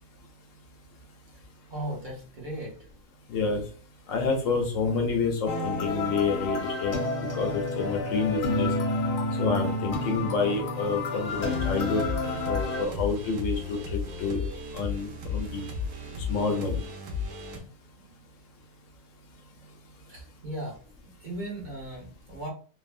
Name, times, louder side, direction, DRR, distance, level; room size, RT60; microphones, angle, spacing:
voice 1, 1.7-2.7 20.1-20.7 21.2-22.5, right 1 dB, 40° right, -2 dB, 0.8 m, -37 dB
voice 2, 3.3-3.6 4.1-7.0 7.3-8.7 9.4-12.0 12.5-14.5 14.7-15.7 16.3-16.8, left 4 dB, 65° left, 3 dB, 0.9 m, -28 dB
sound 1, 5.5-12.9, left 2 dB, 85° left, 1.2 m, -30 dB
sound 2, 11.3-17.6, left 4 dB, 85° right, 1.2 m, -34 dB
3.3 x 2.1 x 2.4 m, 0.39 s
omnidirectional pair, 1.6 m